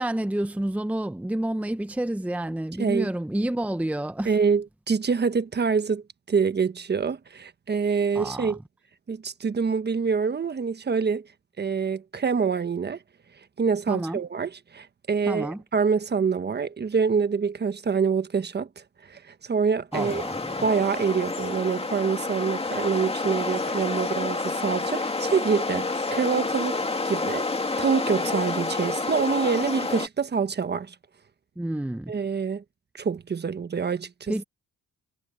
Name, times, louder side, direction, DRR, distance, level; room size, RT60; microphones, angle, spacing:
voice 1, 0.0-4.3 8.1-8.6 13.9-14.2 15.3-15.6 19.9-20.7 31.6-32.1 34.3-34.4, right 1 dB, 5° right, 0.8 m, -29 dB
voice 2, 4.2-8.6 9.1-11.3 11.6-13.0 13.6-18.7 19.1-20.2 20.6-27.5 27.8-30.9 32.1-32.6 33.0-34.3, right 5 dB, 35° right, 1.3 m, -26 dB
sound 1, 19.9-30.1, left 3 dB, 20° left, 2.5 m, -29 dB
cardioid pair, 90°, 30 cm